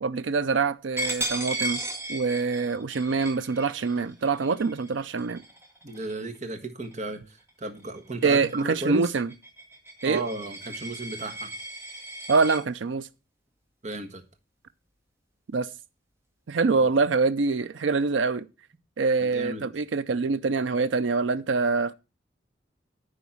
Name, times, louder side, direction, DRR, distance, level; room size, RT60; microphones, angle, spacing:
voice 1, 0.0-1.8 2.1-5.4 8.2-9.3 10.0-10.2 12.3-13.1 15.5-15.7 16.5-18.4 19.0-21.9, right 4 dB, 90° right, 0.5 m, -25 dB
Coin (dropping), 1.0-6.4 6.8-7.1 7.5-12.6, right 1 dB, 15° right, 2.1 m, -36 dB
voice 2, 5.8-7.2 7.6-9.1 10.0-11.5 13.8-14.2 16.8-16.9 19.2-19.7, right 2 dB, 40° right, 1.4 m, -34 dB
10.0 x 4.1 x 7.1 m
head